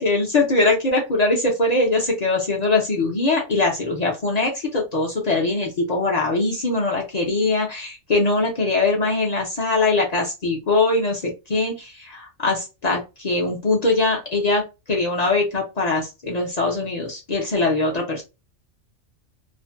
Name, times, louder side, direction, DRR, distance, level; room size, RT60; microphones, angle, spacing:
voice 1, 0.0-14.6 14.9-18.2, left 3 dB, 45° left, -1 dB, 0.5 m, -22 dB
2.5 x 2.1 x 2.4 m, 0.27 s
omnidirectional pair, 1.3 m